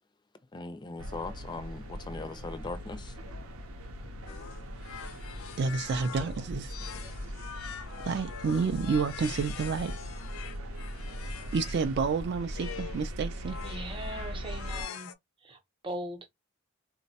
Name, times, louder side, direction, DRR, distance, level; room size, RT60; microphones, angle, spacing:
voice 1, 0.5-3.1, left 3 dB, 20° left, 0.4 m, -39 dB
sound 1, 1.0-14.8, equal, 85° right, 0.7 m, -40 dB
sound 2, 4.3-11.9 12.5-13.1 13.4-15.1, left 8 dB, 75° left, 0.5 m, -44 dB
voice 2, 5.6-6.7 8.0-10.0 11.5-13.6, right 5 dB, 50° right, 0.3 m, -29 dB
voice 3, 13.6-15.1 15.4-16.3, right 1 dB, 25° right, 0.7 m, -40 dB
3.8 x 2.1 x 2.7 m
head